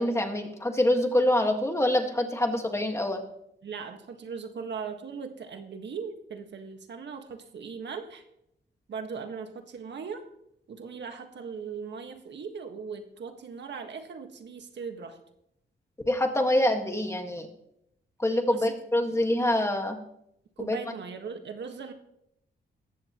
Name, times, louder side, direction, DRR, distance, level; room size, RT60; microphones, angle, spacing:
voice 1, 0.0-3.2 16.1-17.5 18.2-20.0 20.7-20.8, left 1 dB, 15° left, 4 dB, 1.7 m, -25 dB
voice 2, 3.6-8.2 8.9-10.2 10.7-15.2 18.4-18.7 19.1-19.3 20.6-21.9, right 5 dB, 70° right, 6 dB, 1.6 m, -39 dB
19.0 x 14.5 x 3.0 m, 0.79 s
wide cardioid pair, 115°, 19 cm